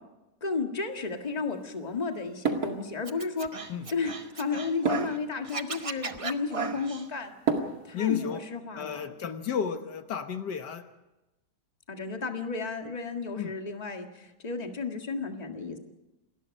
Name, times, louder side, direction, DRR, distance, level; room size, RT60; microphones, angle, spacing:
voice 1, 0.4-3.6 3.9-7.3 7.8-9.0 11.9-15.8, left 4 dB, 25° left, 4 dB, 1.8 m, -33 dB
sound 1, 0.9-8.2, right 5 dB, 60° right, 2.6 m, -36 dB
Scratching (performance technique), 3.1-5.2 5.4-7.0, right 4 dB, 25° right, 0.7 m, -35 dB
voice 2, 7.9-8.4 8.8-10.8 13.4-13.5, left 8 dB, 75° left, 8 dB, 1.7 m, -32 dB
28.0 x 20.0 x 5.4 m, 1.0 s
omnidirectional pair, 1.9 m